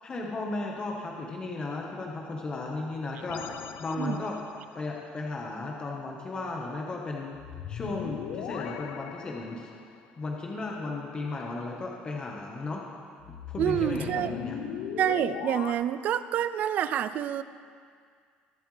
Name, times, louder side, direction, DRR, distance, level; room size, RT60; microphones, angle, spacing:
voice 1, 0.0-3.4 3.8-4.4 4.7-7.4 7.7-9.7 10.2-12.8 13.5-14.6, left 3 dB, 25° left, -1 dB, 1.3 m, -35 dB
sound 1, 3.3-4.6 7.3-10.0 13.2-15.7, left 9 dB, 75° left, 0.6 m, -38 dB
voice 2, 13.6-14.3 15.0-17.4, right 10 dB, 50° right, 14 dB, 0.4 m, -28 dB
22.0 x 7.6 x 3.4 m, 2.1 s
cardioid pair, 135°, 3 cm